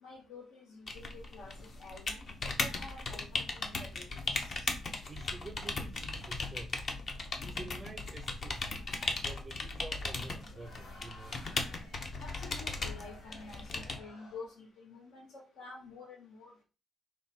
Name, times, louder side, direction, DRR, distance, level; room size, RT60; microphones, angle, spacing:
voice 1, 0.0-2.3 2.6-4.0 4.3-4.7 8.9-9.1 12.2-16.5, left 3 dB, 80° left, 0.9 m, -49 dB
sound 1, 0.9-14.0, left 3 dB, 35° left, 0.6 m, -38 dB
voice 2, 5.1-6.9 7.4-8.7 9.2-11.6, right 3 dB, 20° right, 0.4 m, -48 dB
Crowd, 10.5-14.6, left 2 dB, 60° left, 1.5 m, -55 dB
4.7 x 2.2 x 4.0 m
cardioid pair, 165°, 0 cm